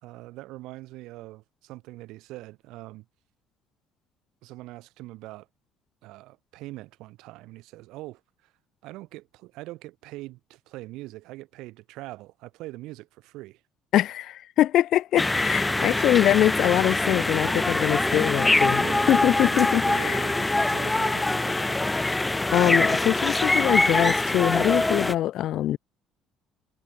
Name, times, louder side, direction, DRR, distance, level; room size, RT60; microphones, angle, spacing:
voice 1, 0.0-3.1 4.4-5.5 6.0-8.5 8.8-13.6 17.4-17.7 18.7-21.9, right 19 dB, 75° right, 3.3 m, -42 dB
voice 2, 13.9-20.2 22.5-25.8, left 13 dB, 55° left, 0.9 m, -23 dB
sound 1, 15.2-25.2, left 2 dB, 10° left, 0.5 m, -24 dB
cardioid pair, 160°, 0 cm